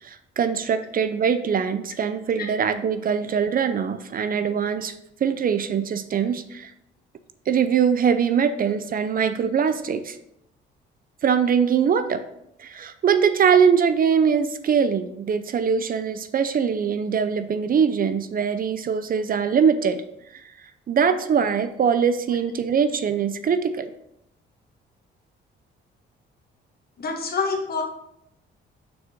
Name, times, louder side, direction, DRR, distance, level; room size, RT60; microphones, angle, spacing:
voice 1, 0.0-4.9 5.2-6.7 7.5-10.2 11.2-12.2 12.6-20.0 20.3-20.4 20.9-23.9, right 7 dB, 45° right, 11 dB, 0.5 m, -22 dB
voice 2, 27.0-27.8, left 4 dB, 50° left, 2 dB, 1.5 m, -26 dB
6.3 x 4.3 x 4.3 m, 0.79 s
cardioid pair, 90°, 20 cm